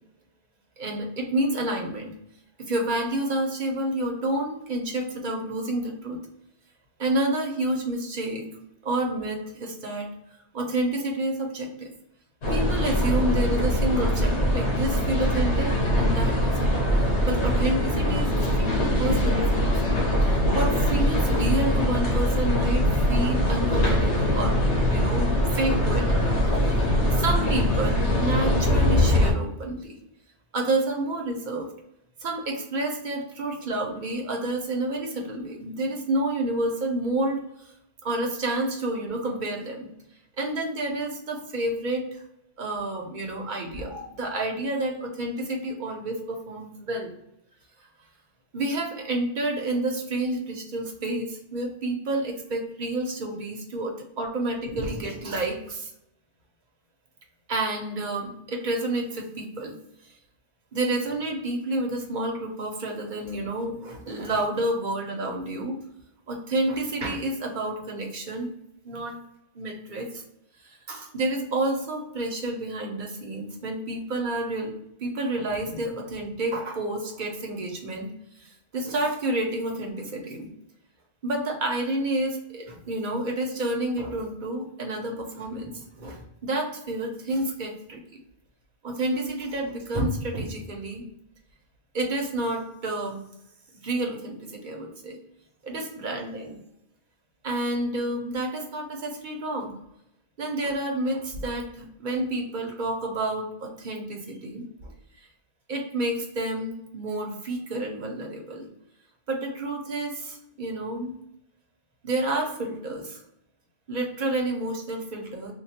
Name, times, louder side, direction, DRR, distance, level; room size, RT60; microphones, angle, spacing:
voice 1, 0.8-2.1 2.7-6.2 7.0-8.5 8.8-10.1 10.5-11.9 12.5-16.8 17.3-20.1 20.5-24.6 24.9-26.4 26.6-26.7 27.1-29.9 30.5-31.7 32.2-37.4 38.0-39.9 40.4-42.2 42.6-47.1 48.5-55.9 57.5-59.7 60.7-65.8 66.3-68.5 68.8-69.2 69.5-70.2 70.6-74.7 75.0-78.1 78.7-80.5 81.2-88.0 88.8-91.0 91.9-93.2 93.8-95.2 95.6-96.6 97.4-99.7 100.4-104.9 105.7-108.7 109.3-111.1 112.0-113.2 113.9-115.5, right 1 dB, 50° right, 1 dB, 0.9 m, -29 dB
sound 1, 12.4-29.3, equal, 85° left, 1.2 m, -22 dB
3.0 x 2.3 x 4.1 m, 0.81 s
omnidirectional pair, 1.1 m